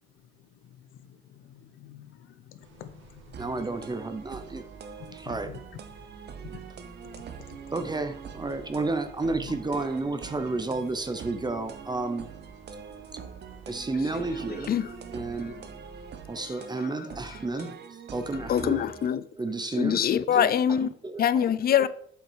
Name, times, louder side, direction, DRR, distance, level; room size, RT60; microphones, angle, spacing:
voice 1, 0.6-3.4 5.1-5.2 5.5-5.6 7.4-7.6 9.3-9.5, left 10 dB, 85° left, 0.9 m, -48 dB
sound 1, 2.6-16.3, right 5 dB, 80° right, 2.5 m, -51 dB
sound 2, 3.3-19.1, right 7 dB, 55° right, 0.9 m, -44 dB
voice 2, 3.4-4.7 5.1-5.5 7.7-12.3 13.7-14.7 15.1-15.6 16.3-17.7 18.1-18.8 19.4-20.0 20.3-21.4 21.8-21.9, right 3 dB, 20° right, 0.8 m, -31 dB
voice 3, 16.4-16.9 17.6-17.7 18.4-19.2 19.6-20.9 21.2-21.9, left 9 dB, 50° left, 0.5 m, -25 dB
7.4 x 5.6 x 4.7 m
cardioid pair, 90°, 20 cm